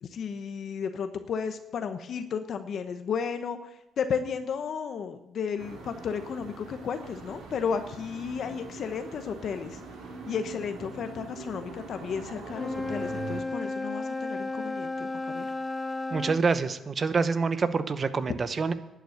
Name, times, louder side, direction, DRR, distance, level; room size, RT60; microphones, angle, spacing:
voice 1, 0.0-9.8 10.3-15.5, left 6 dB, 60° left, 8 dB, 0.9 m, -33 dB
sound 1, 5.6-13.4, right 4 dB, 85° right, 2.9 m, -43 dB
Wind instrument woodwind instrument, 12.5-16.4, left 2 dB, 20° left, 0.6 m, -33 dB
voice 2, 16.1-18.7, right 4 dB, 40° right, 12 dB, 0.9 m, -26 dB
11.5 x 8.5 x 8.1 m, 0.90 s
cardioid pair, 90°, 0 cm